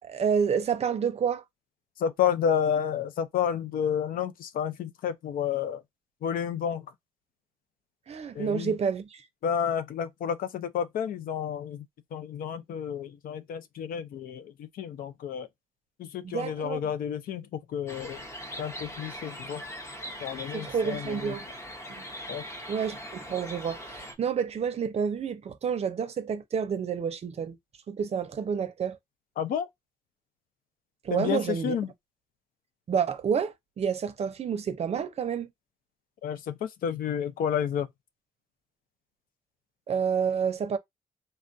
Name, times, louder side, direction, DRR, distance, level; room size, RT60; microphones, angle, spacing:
voice 1, 0.0-1.4 8.1-9.2 16.2-16.8 20.5-21.5 21.9-22.0 22.7-27.6 27.9-29.0 31.0-31.7 32.9-35.5 39.9-40.8, right 7 dB, 45° right, 0.5 m, -29 dB
voice 2, 2.0-5.8 6.2-6.9 8.3-8.7 9.4-11.8 12.1-15.5 16.0-18.2 18.6-19.6 20.2-21.4 22.3-22.4 29.4-29.7 31.1-31.9 36.2-37.9, left 8 dB, 80° left, 0.5 m, -30 dB
sound 1, 17.9-24.1, equal, 20° left, 0.7 m, -41 dB
3.3 x 2.3 x 2.6 m
cardioid pair, 105°, 14 cm